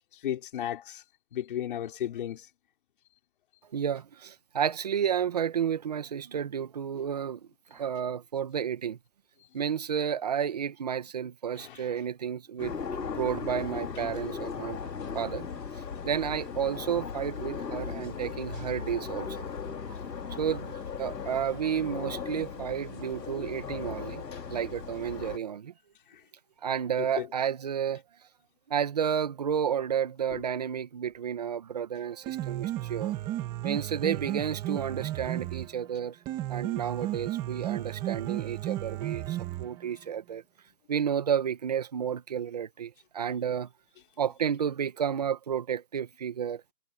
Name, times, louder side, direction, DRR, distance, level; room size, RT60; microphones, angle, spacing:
voice 1, 0.2-1.0 1.3-2.5 11.6-11.9 27.0-27.3 30.3-30.4, left 11 dB, 30° left, 4.1 m, -34 dB
voice 2, 3.7-7.4 7.7-9.0 9.5-14.8 15.1-15.4 16.0-19.5 19.9-20.0 20.3-24.2 24.5-25.7 26.6-28.0 28.7-33.1 33.6-36.2 36.5-40.4 40.9-43.7 44.2-46.6, right 8 dB, 25° right, 1.3 m, -31 dB
sound 1, 12.6-25.4, left 6 dB, 75° left, 3.1 m, -37 dB
Piano, 32.1-40.1, right 14 dB, 10° right, 1.9 m, -34 dB
hypercardioid pair, 170°, 50 cm